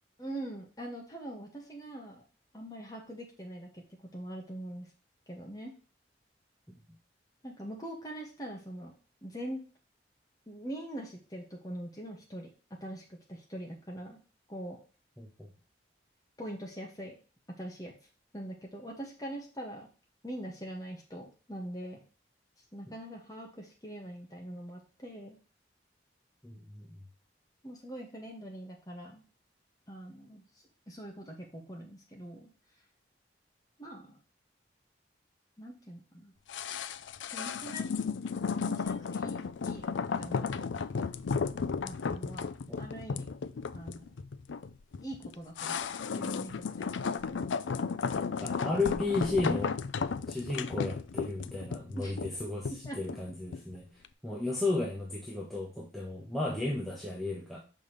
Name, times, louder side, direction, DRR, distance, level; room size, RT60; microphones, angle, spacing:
voice 1, 0.2-2.2 2.5-3.8 4.1-4.9 5.3-5.7 7.4-8.9 9.2-9.6 10.5-12.5 12.8-14.2 14.5-14.8 16.4-17.2 17.6-17.9 18.3-19.9 20.2-22.0 22.7-25.4 27.6-29.2 29.9-30.4 30.9-32.5 33.8-34.2 35.6-36.3 37.3-37.9 38.6-39.9 40.2-40.7 41.8-43.3 43.7-44.1 45.0-45.8 46.1-46.6 52.0-52.1 52.8-53.0, right 1 dB, 20° left, -1 dB, 1.9 m, -43 dB
voice 2, 15.2-15.5 26.4-27.0 38.1-38.2 42.7-42.8 48.4-49.8 50.3-53.9 54.2-57.6, left 2 dB, ahead, -4 dB, 1.2 m, -34 dB
sound 1, 36.5-53.7 54.0-54.1, left 5 dB, 85° left, 0.4 m, -34 dB
6.6 x 5.5 x 3.3 m, 0.36 s
head